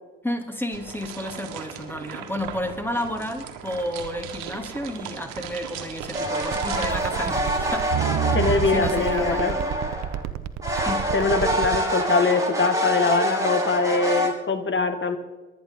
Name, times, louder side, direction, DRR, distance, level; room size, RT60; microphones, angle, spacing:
voice 1, 0.2-7.8 8.3-9.6 10.8-11.0, left 1 dB, 5° left, 4 dB, 3.0 m, -31 dB
sound 1, 0.7-8.1, right 8 dB, 90° right, 1.5 m, -38 dB
sound 2, 6.1-10.2 10.6-14.3, right 1 dB, 10° right, 5.2 m, -26 dB
sound 3, 6.4-11.8, right 10 dB, 65° right, 0.9 m, -29 dB
voice 2, 8.3-9.6 11.1-15.2, left 4 dB, 40° left, 8 dB, 1.9 m, -23 dB
22.5 x 9.8 x 3.9 m, 1.2 s
supercardioid pair, 55°, 29 cm